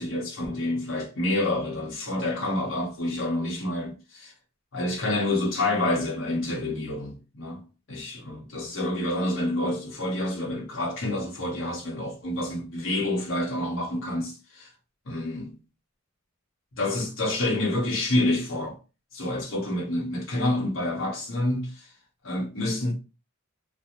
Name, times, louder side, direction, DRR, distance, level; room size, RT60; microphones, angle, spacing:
voice 1, 0.0-4.3 4.7-14.7 15.1-15.6 16.7-18.8 19.1-21.9 22.2-22.9, left 1 dB, 65° left, 0.8 m, -28 dB
2.4 x 2.1 x 2.9 m
head